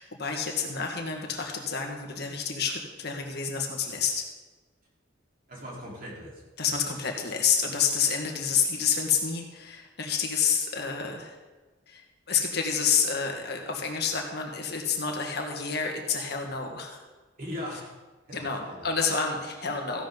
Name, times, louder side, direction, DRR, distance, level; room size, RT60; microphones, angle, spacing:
voice 1, 0.0-4.2 6.6-11.4 11.9-17.0 18.3-20.1, left 6 dB, 55° left, 2 dB, 1.8 m, -29 dB
voice 2, 5.5-6.4 17.4-17.9 18.3-18.9, left 1 dB, 45° right, -5 dB, 4.0 m, -39 dB
15.0 x 11.5 x 4.0 m, 1.2 s
head